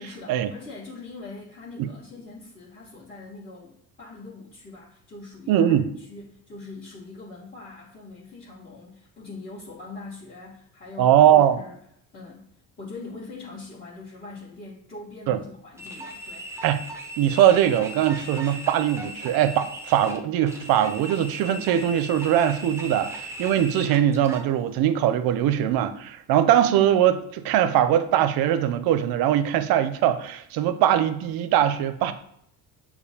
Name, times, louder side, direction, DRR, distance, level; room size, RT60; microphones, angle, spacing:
voice 1, 0.0-11.8 12.1-12.5 12.8-16.5, left 3 dB, 25° left, -9 dB, 1.3 m, -42 dB
voice 2, 5.5-5.9 11.0-11.6 15.3-15.4 16.6-16.8 17.2-32.1, right 10 dB, 70° right, 12 dB, 0.5 m, -21 dB
sound 1, 15.8-24.5, right 1 dB, 5° right, 0.6 m, -38 dB
6.7 x 2.3 x 2.7 m, 0.72 s
cardioid pair, 110°, 38 cm